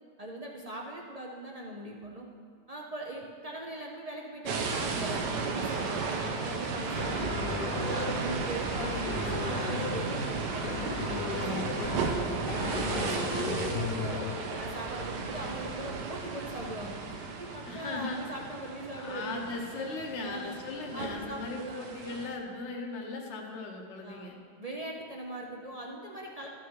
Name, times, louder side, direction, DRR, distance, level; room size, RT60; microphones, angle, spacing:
voice 1, 0.2-2.3 2.7-7.3 7.7-14.2 14.5-17.0 17.4-19.6 20.2-20.6 20.9-22.2 24.0-24.3 24.6-26.5, right 1 dB, 45° right, -1 dB, 0.5 m, -40 dB
sound 1, 4.5-22.4, right 4 dB, 80° right, 1.4 m, -34 dB
sound 2, 7.0-14.3, left 4 dB, 75° left, 1.5 m, -36 dB
voice 2, 17.6-18.2 19.0-24.3, left 3 dB, 45° left, 1 dB, 1.3 m, -38 dB
13.5 x 5.9 x 4.7 m, 2.1 s
omnidirectional pair, 1.8 m